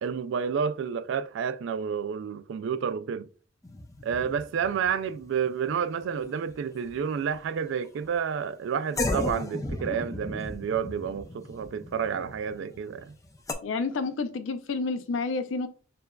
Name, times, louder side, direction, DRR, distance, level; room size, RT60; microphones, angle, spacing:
voice 1, 0.0-3.3 4.0-13.1, right 7 dB, 70° right, 0.3 m, -30 dB
sound 1, 3.6-6.5 6.8-7.3 8.0-8.2 8.9-13.5, left 2 dB, 15° left, 0.5 m, -35 dB
voice 2, 13.6-15.7, left 4 dB, 75° left, 0.5 m, -29 dB
6.6 x 2.4 x 2.2 m
head